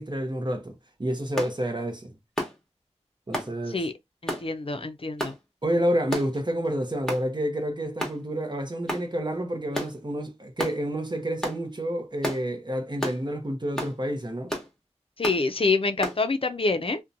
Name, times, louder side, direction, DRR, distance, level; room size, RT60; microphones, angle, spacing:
voice 1, 0.0-2.2 3.3-3.9 5.6-14.5, equal, 40° right, 0.7 m, -29 dB
sound 1, 1.4-1.6 2.4-2.6 3.3-3.5 4.3-4.5 5.2-5.4 6.1-6.4 7.1-7.3 8.0-8.2 8.9-9.1 9.7-9.9 10.6-10.8 11.4-11.6 12.2-12.4 13.0-13.2 13.8-14.0 14.5-14.7 15.2-15.4 16.0-16.2, equal, 5° left, 1.0 m, -31 dB
voice 2, 4.2-5.3 15.2-17.0, left 3 dB, 50° left, 0.4 m, -26 dB
2.7 x 2.1 x 2.5 m
wide cardioid pair, 40°, 12 cm